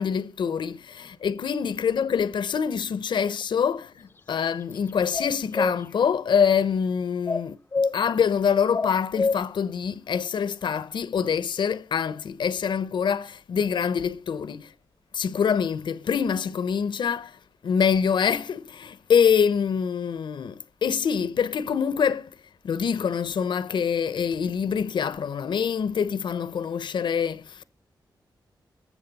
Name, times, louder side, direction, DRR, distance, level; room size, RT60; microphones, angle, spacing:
voice 1, 0.0-14.7 15.1-17.4 17.6-22.3 22.6-27.6, left 7 dB, 75° left, 0.7 m, -25 dB
sound 1, 5.1-5.8 7.3-7.9 8.7-9.4, left 4 dB, 30° left, 0.5 m, -25 dB
20.0 x 7.5 x 4.1 m
wide cardioid pair, 105°, 8 cm